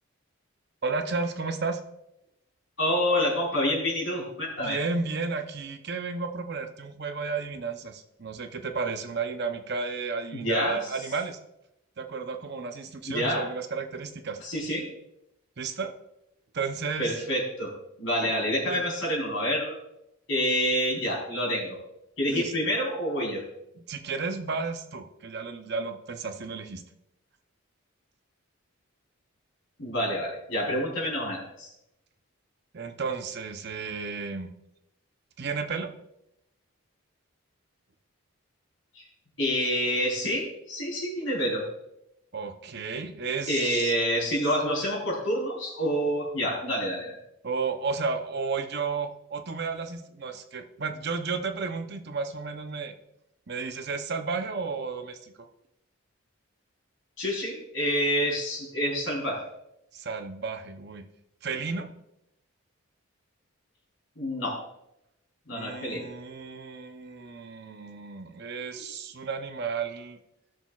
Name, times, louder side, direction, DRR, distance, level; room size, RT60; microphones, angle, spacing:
voice 1, 0.8-1.8 4.6-11.4 12.0-14.4 15.6-15.9 16.5-17.2 18.2-18.3 18.7-18.8 22.3-22.5 23.9-26.8 32.7-34.5 35.4-35.9 42.3-44.0 47.4-52.9 53.5-55.3 59.9-61.0 61.4-61.9 65.5-70.2, right 4 dB, 50° right, 6 dB, 0.7 m, -33 dB
voice 2, 2.8-4.8 10.3-10.8 13.1-13.4 14.4-14.9 17.0-17.7 18.0-19.7 20.3-21.8 22.2-23.4 29.8-31.7 38.9-39.0 39.4-41.6 43.5-47.1 57.2-59.4 64.2-64.6 65.5-66.1, equal, 65° left, -2 dB, 3.4 m, -27 dB
17.0 x 6.3 x 2.4 m, 0.84 s
head